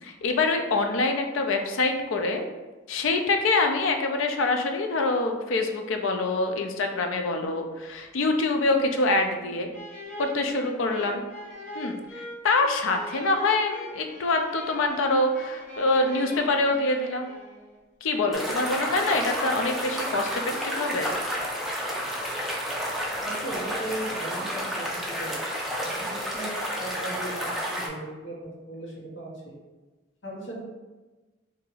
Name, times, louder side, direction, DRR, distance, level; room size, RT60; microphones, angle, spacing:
voice 1, 0.0-2.4 2.9-9.7 10.2-11.2 11.7-17.3 18.0-21.1, left 2 dB, 85° left, 4 dB, 0.4 m, -25 dB
sound 1, 9.7-17.8, equal, 45° left, 0.9 m, -42 dB
sound 2, 18.3-27.9, equal, ahead, 0.4 m, -30 dB
voice 2, 23.2-25.4 25.7-29.6 30.2-30.7, right 1 dB, 70° left, -5 dB, 1.1 m, -37 dB
2.8 x 2.6 x 3.9 m, 1.2 s
head